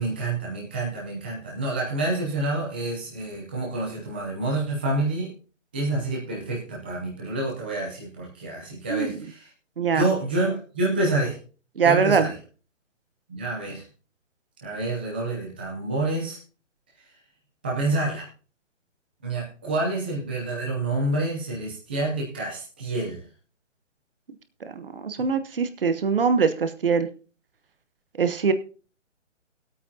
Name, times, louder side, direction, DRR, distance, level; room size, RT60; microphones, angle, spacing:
voice 1, 0.0-5.3 5.7-9.5 9.9-11.4 11.8-12.3 13.3-13.8 14.6-16.4 17.6-18.3 19.2-23.2, right 2 dB, 10° right, -4 dB, 0.7 m, -28 dB
voice 2, 9.8-10.1 11.8-12.3 24.7-27.1 28.2-28.5, right 5 dB, 45° right, 10 dB, 1.0 m, -22 dB
20.0 x 8.6 x 2.8 m, 0.37 s
hypercardioid pair, 170°, 38 cm